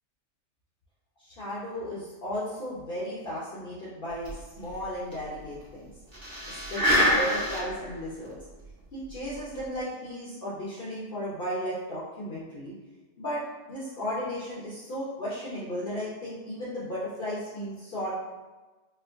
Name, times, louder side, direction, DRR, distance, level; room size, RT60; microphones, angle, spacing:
voice 1, 1.2-5.9 6.5-8.3 8.9-12.7 13.2-13.4 13.7-18.1, equal, 55° left, -8 dB, 1.0 m, -35 dB
sound 1, 4.3-4.4 4.6-4.7 5.1-5.2 6.1-7.9 8.3-8.4 9.4-9.6, equal, 50° right, 1.3 m, -25 dB
4.3 x 2.1 x 2.5 m, 1.2 s
omnidirectional pair, 1.2 m